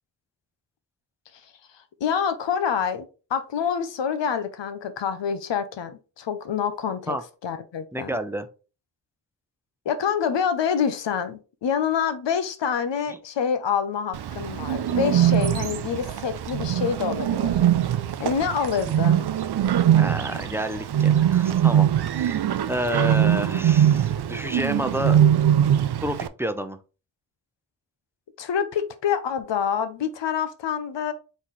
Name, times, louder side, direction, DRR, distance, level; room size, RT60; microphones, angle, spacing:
voice 1, 1.3-7.2 7.4-8.1 9.9-17.6 18.2-19.2 28.4-31.1, left 7 dB, 85° left, 0.7 m, -27 dB
voice 2, 7.9-8.5 20.0-22.4 22.7-25.2 26.0-26.8, equal, 5° right, 0.6 m, -30 dB
Bird, 14.1-26.3, right 10 dB, 65° right, 0.5 m, -22 dB
4.1 x 4.1 x 3.1 m
cardioid pair, 45°, 43 cm